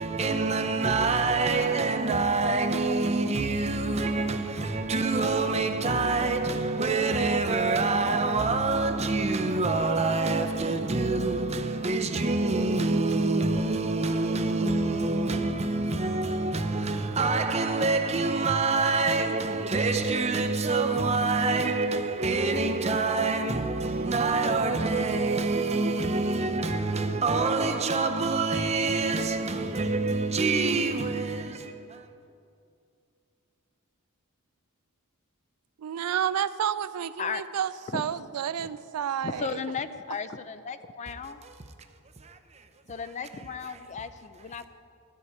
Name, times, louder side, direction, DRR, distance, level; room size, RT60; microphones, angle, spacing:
voice 1, 0.0-32.1 41.2-41.5 42.2-42.7 43.6-43.8, right 3 dB, 30° right, 0.6 m, -26 dB
voice 2, 35.8-39.6, right 9 dB, 80° right, 0.3 m, -30 dB
voice 3, 39.2-41.4 42.9-44.7, left 5 dB, 30° left, 0.4 m, -35 dB
13.5 x 4.9 x 8.6 m
head